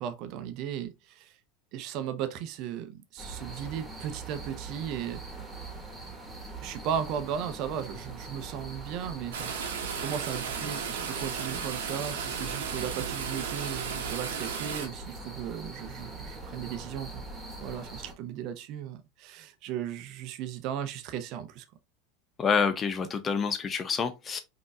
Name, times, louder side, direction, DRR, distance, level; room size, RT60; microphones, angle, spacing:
voice 1, 0.0-1.4 1.7-5.2 6.6-9.5 10.0-17.3 17.6-21.6, right 9 dB, 50° right, 0.7 m, -36 dB
sound 1, 3.2-18.1, right 3 dB, 10° right, 1.8 m, -42 dB
sound 2, 9.3-14.9, right 7 dB, 75° right, 1.0 m, -35 dB
voice 2, 22.4-24.4, left 5 dB, 30° left, 0.5 m, -27 dB
5.2 x 3.0 x 2.3 m
hypercardioid pair, 85°, 0 cm